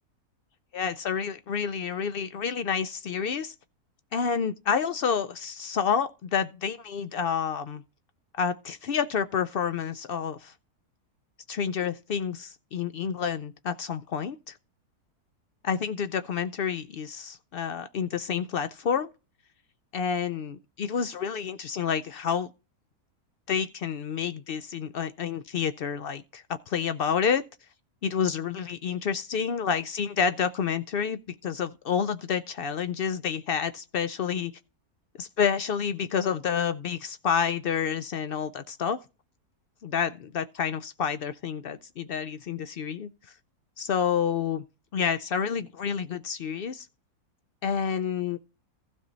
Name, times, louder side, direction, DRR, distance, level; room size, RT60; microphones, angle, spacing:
voice 1, 0.7-3.5 4.1-7.8 8.4-10.5 11.5-14.6 15.6-19.1 19.9-22.5 23.5-27.4 28.0-34.5 35.2-39.0 39.8-43.1 43.8-44.6 44.9-46.9 47.6-48.4, left 7 dB, 80° left, 0.5 m, -29 dB
15.5 x 5.4 x 3.9 m
omnidirectional pair, 1.6 m